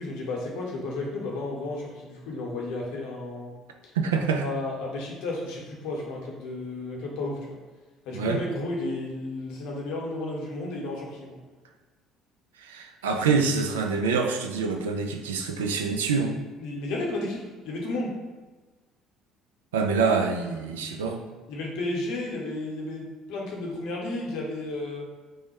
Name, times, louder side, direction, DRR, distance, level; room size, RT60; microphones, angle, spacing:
voice 1, 0.0-3.5 3.8-3.9 4.4-7.6 8.0-11.4 16.6-18.1 21.5-25.1, left 2 dB, 65° left, -2 dB, 0.8 m, -33 dB
voice 2, 3.9-4.4 8.1-8.4 12.6-16.4 19.7-21.2, right 5 dB, 80° right, 4 dB, 0.3 m, -26 dB
3.1 x 2.1 x 4.2 m, 1.2 s
hypercardioid pair, 55°, 0 cm